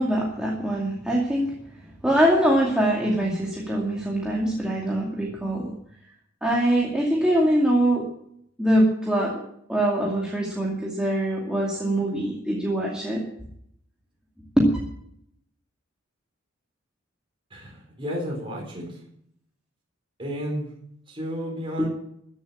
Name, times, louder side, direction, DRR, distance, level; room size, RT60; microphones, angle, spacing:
voice 1, 0.0-1.6 2.0-5.7 6.4-8.1 8.6-9.4 9.7-13.2 14.6-14.8 21.8-21.9, right 1 dB, 5° right, -4 dB, 2.4 m, -23 dB
voice 2, 17.5-19.0 20.2-20.7 21.1-21.9, equal, 25° right, -2 dB, 4.5 m, -32 dB
14.5 x 8.0 x 8.8 m, 0.71 s
head